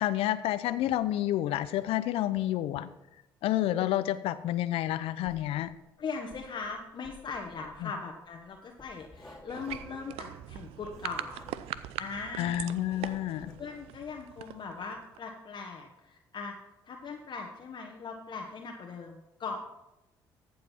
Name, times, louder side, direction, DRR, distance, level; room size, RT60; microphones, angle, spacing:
voice 1, 0.0-2.9 3.4-5.7 7.8-7.9 12.4-13.5, left 13 dB, 75° left, 14 dB, 0.7 m, -29 dB
Writing, 5.2-5.9 6.2-12.0 12.3-13.7, left 1 dB, 10° left, 3.0 m, -53 dB
voice 2, 6.0-11.5 12.0-12.7 13.6-16.6 16.9-19.6, left 4 dB, 50° left, 1 dB, 1.3 m, -40 dB
sound 1, 9.5-15.3, right 13 dB, 75° right, 0.5 m, -42 dB
14.0 x 7.6 x 4.4 m, 0.91 s
supercardioid pair, 60°, 10 cm